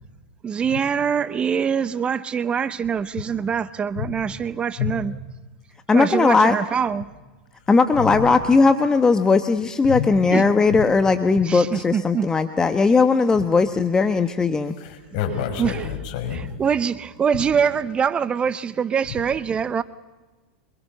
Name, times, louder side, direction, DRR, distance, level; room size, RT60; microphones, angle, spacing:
voice 1, 0.4-5.2 5.9-7.1 10.3-10.5 11.4-12.4 15.6-15.9 16.3-19.8, right 7 dB, 25° right, 0.7 m, -24 dB
voice 2, 5.9-6.6 7.7-14.7, left 4 dB, 15° left, 1.1 m, -18 dB
voice 3, 8.0-8.4 9.9-10.1 11.3-11.4 13.3-13.5 14.8-16.5, left 9 dB, 55° left, 5.7 m, -28 dB
25.0 x 22.0 x 6.8 m
hypercardioid pair, 100°, 4 cm